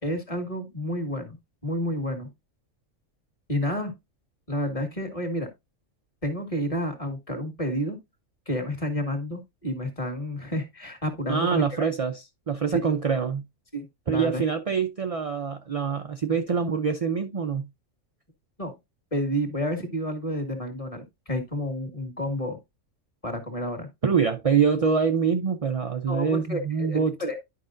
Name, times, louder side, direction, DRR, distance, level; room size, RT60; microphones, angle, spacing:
voice 1, 0.0-1.4 1.6-2.3 3.5-3.9 4.5-5.5 6.2-8.0 8.4-11.9 12.7-12.9 13.7-14.4 18.6-18.7 19.1-22.6 23.2-23.9 26.1-27.4, equal, 25° left, 1.8 m, -30 dB
voice 2, 11.3-13.4 14.1-17.7 24.0-27.2, right 6 dB, 45° right, 0.5 m, -25 dB
11.0 x 5.0 x 2.5 m
omnidirectional pair, 1.4 m